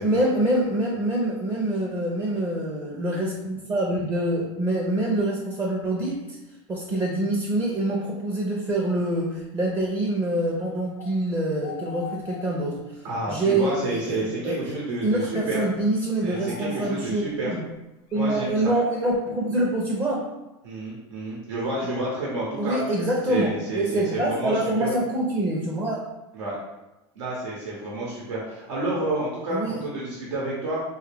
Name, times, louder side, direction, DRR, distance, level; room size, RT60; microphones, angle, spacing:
voice 1, 0.0-6.4 6.7-12.8 13.3-14.8 15.0-17.6 18.1-20.3 22.6-26.0 29.5-29.8, right 1 dB, 15° right, -3 dB, 0.5 m, -25 dB
sound 1, 11.0-11.2 11.6-12.9 13.5-13.6 14.2-14.8 16.0-17.4 18.1-18.2, left 7 dB, 60° left, 0.5 m, -41 dB
voice 2, 13.0-15.6 16.2-17.5 18.1-18.7 20.6-22.8 23.3-24.9 26.3-26.6 27.1-30.8, right 2 dB, 90° right, -5 dB, 1.0 m, -30 dB
3.3 x 2.3 x 3.4 m, 1.0 s
supercardioid pair, 135°, 15 cm